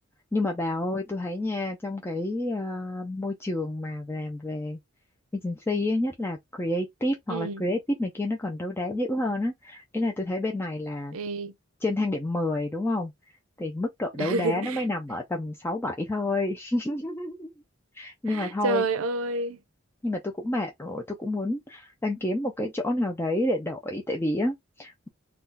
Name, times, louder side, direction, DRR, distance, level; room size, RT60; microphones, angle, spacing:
voice 1, 0.3-4.8 5.3-11.2 11.8-13.1 13.6-17.5 17.9-18.8 20.0-25.1, left 1 dB, 10° left, 0.4 m, -29 dB
voice 2, 7.3-7.6 11.1-11.5 14.2-14.8 18.3-19.6, right 3 dB, 80° right, 0.5 m, -29 dB
2.7 x 2.3 x 3.6 m
head